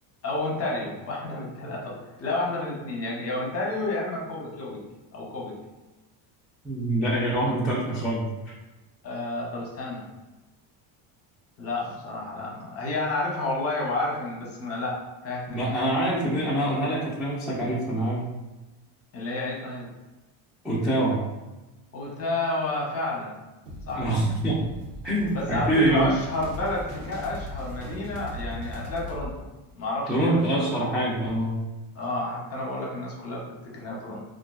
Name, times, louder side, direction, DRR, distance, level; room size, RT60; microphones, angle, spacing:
voice 1, 0.2-4.8 5.1-5.6 9.0-10.1 11.6-15.7 19.1-19.9 21.9-23.4 23.9-24.0 25.3-29.5 29.8-30.7 31.9-34.2, left 2 dB, 30° left, -2 dB, 0.7 m, -30 dB
voice 2, 6.6-8.5 15.5-18.3 20.6-21.2 24.0-24.6 25.0-26.1 30.1-31.6, right 1 dB, ahead, -8 dB, 0.3 m, -25 dB
sound 1, 23.7-29.3, equal, 90° right, 1.0 m, -38 dB
3.5 x 2.4 x 2.3 m, 1.1 s
cardioid pair, 135°, 49 cm